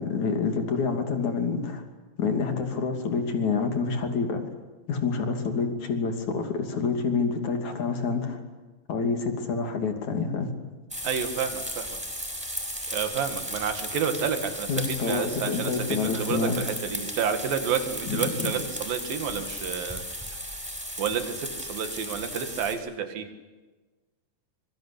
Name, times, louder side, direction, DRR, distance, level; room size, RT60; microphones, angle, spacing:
voice 1, 0.0-1.8 2.2-4.4 4.9-8.4 8.9-10.5 14.7-16.6 18.1-18.5, left 4 dB, 55° left, 5 dB, 4.1 m, -27 dB
sound 1, 10.9-22.7, equal, ahead, 6.4 m, -35 dB
voice 2, 11.0-12.0 12.9-20.0 21.0-23.3, right 7 dB, 80° right, 7 dB, 3.9 m, -30 dB
25.5 x 23.0 x 8.4 m, 1.3 s
omnidirectional pair, 4.0 m